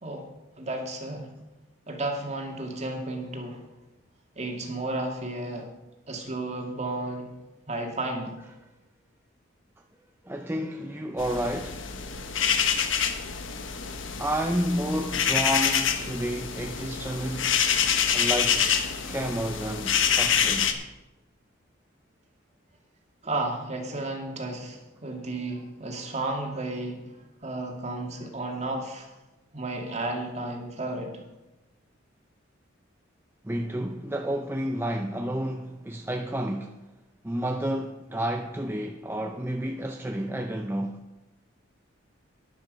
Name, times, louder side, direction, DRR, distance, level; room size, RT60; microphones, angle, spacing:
voice 1, 0.6-1.3 1.9-3.6 4.4-5.7 6.1-7.3 7.7-8.4 23.2-27.2 27.4-29.1 29.5-31.1, right 2 dB, 35° right, 2.1 m, -33 dB
voice 2, 10.2-11.8 14.2-17.7 18.1-18.7 19.1-20.8 33.4-36.8 37.2-41.0, equal, 10° right, 0.5 m, -30 dB
sound 1, 11.2-20.7, left 7 dB, 70° left, 1.2 m, -26 dB
13.0 x 10.0 x 5.3 m
head